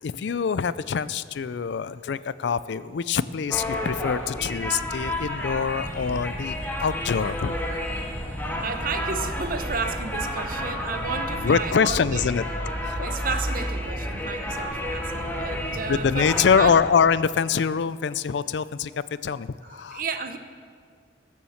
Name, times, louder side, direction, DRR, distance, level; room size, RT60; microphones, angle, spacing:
voice 1, 0.0-7.6 11.4-12.4 12.8-13.1 15.9-18.9 19.2-20.0, left 6 dB, 70° left, 16 dB, 0.4 m, -24 dB
sound 1, 3.5-16.7, equal, 10° left, 1.6 m, -31 dB
voice 2, 8.6-12.2 13.0-16.8 19.6-20.4, right 5 dB, 50° right, 8 dB, 0.9 m, -32 dB
20.5 x 7.1 x 7.2 m, 2.1 s
head